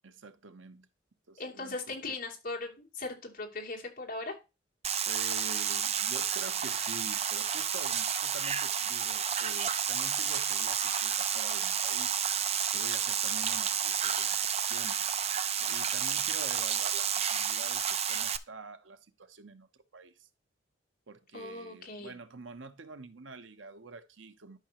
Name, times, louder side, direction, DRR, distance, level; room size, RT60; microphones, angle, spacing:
voice 1, 0.0-0.9 1.3-2.2 5.0-12.2 12.7-15.1 15.6-20.3 21.1-24.6, right 3 dB, 85° right, 0.9 m, -47 dB
voice 2, 1.4-4.3 21.3-22.1, left 2 dB, 45° left, 3.0 m, -39 dB
sound 1, 4.8-18.4, right 8 dB, 35° right, 0.6 m, -31 dB
12.0 x 5.9 x 3.0 m
head